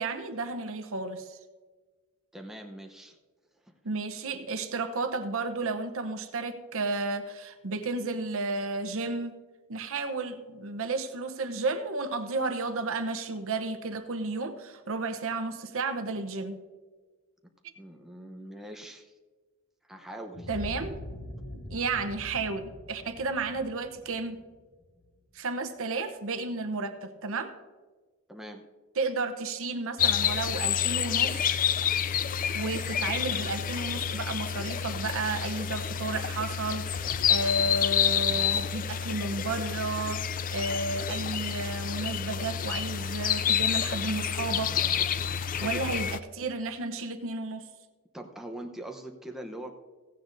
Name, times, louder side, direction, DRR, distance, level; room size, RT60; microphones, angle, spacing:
voice 1, 0.0-1.4 3.8-9.3 9.7-16.6 20.5-21.0 21.7-24.4 25.3-27.5 29.0-31.4 32.5-44.7 45.6-47.7, right 3 dB, 65° right, 8 dB, 0.8 m, -32 dB
voice 2, 2.3-3.2 3.6-3.7 17.8-19.1 19.8-20.5 28.3-28.6 45.6-46.0 48.1-49.7, right 1 dB, ahead, 2 dB, 0.8 m, -42 dB
sound 1, 20.3-25.1, left 1 dB, 80° left, 1.4 m, -43 dB
sound 2, 30.0-46.2, left 8 dB, 40° left, 0.4 m, -29 dB
16.0 x 15.5 x 2.6 m, 1.4 s
head